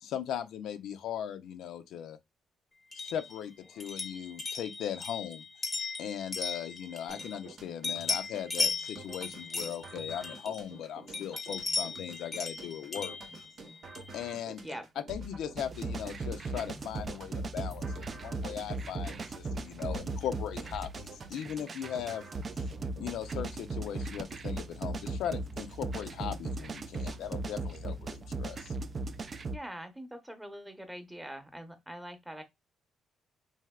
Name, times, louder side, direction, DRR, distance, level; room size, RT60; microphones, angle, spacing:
voice 1, 0.0-2.2 2.9-5.4 6.0-13.1 14.1-14.6 15.1-22.2 23.0-28.7, left 9 dB, 80° left, 0.4 m, -38 dB
sound 1, 2.9-7.5 7.8-10.8 11.1-14.2, left 4 dB, 25° left, 0.6 m, -37 dB
sound 2, 7.1-23.1, right 2 dB, 55° right, 0.8 m, -49 dB
sound 3, 15.6-29.6, right 2 dB, 40° right, 0.3 m, -37 dB
voice 2, 29.5-32.4, right 1 dB, 10° right, 0.8 m, -43 dB
3.3 x 2.7 x 2.2 m
cardioid pair, 90°, 0 cm